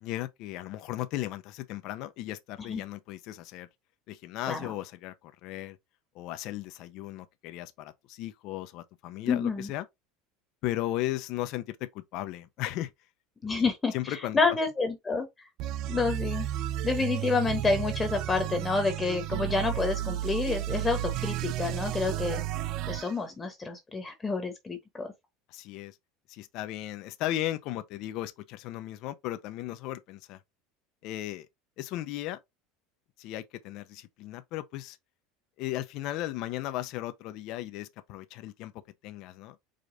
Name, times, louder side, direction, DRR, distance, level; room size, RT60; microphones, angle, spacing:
voice 1, 0.0-3.7 4.1-5.8 6.1-9.9 10.6-12.9 13.9-14.4 25.5-26.0 26.3-30.4 31.0-31.5 31.8-32.4 33.2-35.0 35.6-38.7 39.0-39.6, left 14 dB, 55° left, 0.6 m, -36 dB
voice 2, 9.2-9.7 13.4-15.5 15.9-16.5 16.8-22.4 22.9-25.1, left 4 dB, 15° left, 1.0 m, -29 dB
sound 1, 15.6-23.1, right 13 dB, 55° right, 0.4 m, -32 dB
5.0 x 2.5 x 4.0 m
supercardioid pair, 130°, 0 cm